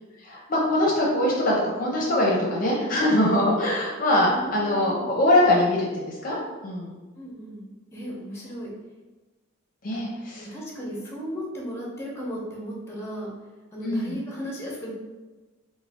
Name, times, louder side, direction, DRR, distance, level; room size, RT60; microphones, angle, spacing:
voice 1, 0.2-6.4 6.6-7.0 9.8-10.4 13.8-14.2, left 1 dB, 45° left, -3 dB, 0.6 m, -23 dB
voice 2, 4.2-5.1 7.1-8.7 9.9-10.0 10.4-13.3 13.7-14.9, equal, 15° left, -3 dB, 0.8 m, -35 dB
3.6 x 2.1 x 3.5 m, 1.2 s
head